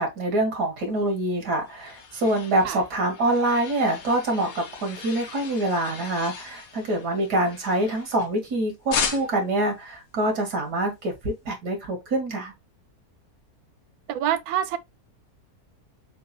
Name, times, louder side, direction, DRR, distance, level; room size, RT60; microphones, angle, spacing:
voice 1, 0.0-12.5, right 1 dB, 90° right, 2.2 m, -25 dB
sound 1, 1.2-8.5 8.9-9.6, left 6 dB, 65° left, 1.3 m, -36 dB
voice 2, 14.1-14.8, right 10 dB, 75° right, 1.0 m, -26 dB
6.6 x 2.5 x 2.6 m
omnidirectional pair, 1.7 m